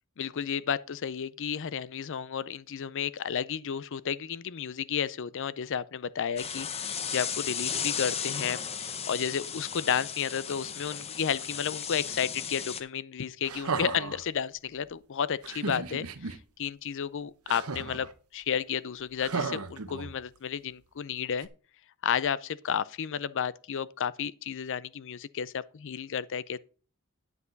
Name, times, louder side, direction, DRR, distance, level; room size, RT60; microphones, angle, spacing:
voice 1, 0.2-21.5 22.0-26.6, left 7 dB, 55° left, 0.5 m, -32 dB
sound 1, 6.4-12.8, left 7 dB, 30° left, 0.8 m, -35 dB
sound 2, 13.4-14.2 15.4-16.4 17.5-18.1 19.2-20.4 21.4-21.5, right 4 dB, 75° right, 0.9 m, -35 dB
9.6 x 8.1 x 3.9 m
head